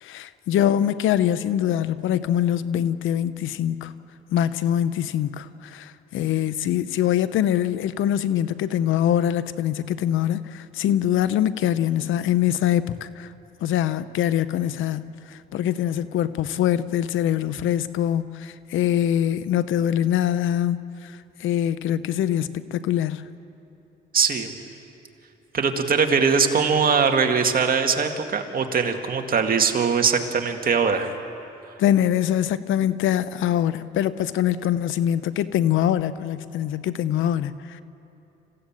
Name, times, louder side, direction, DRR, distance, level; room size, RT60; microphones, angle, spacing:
voice 1, 0.0-3.9 4.3-13.3 13.6-21.1 21.4-23.2 31.8-37.8, left 11 dB, 80° left, 14 dB, 0.8 m, -23 dB
voice 2, 24.1-24.5 25.5-31.1, right 5 dB, 45° right, 4 dB, 2.2 m, -21 dB
27.5 x 16.0 x 8.9 m, 2.8 s
cardioid pair, 90°, 20 cm